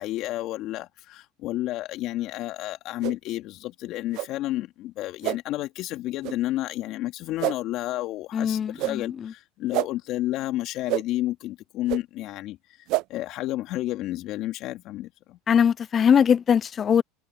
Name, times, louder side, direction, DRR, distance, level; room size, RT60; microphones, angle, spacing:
voice 1, 0.0-12.6 13.1-15.4, left 15 dB, 55° left, 3.0 m, -31 dB
sound 1, 3.0-3.2 4.1-4.3 5.2-5.4 6.2-6.3 7.4-7.6 8.8-8.9 9.7-9.9 10.9-11.0 11.9-12.0 12.9-13.0, right 19 dB, 55° right, 0.9 m, -26 dB
voice 2, 8.3-9.3 15.5-17.0, left 8 dB, 30° left, 0.5 m, -21 dB
supercardioid pair, 110°, 0 cm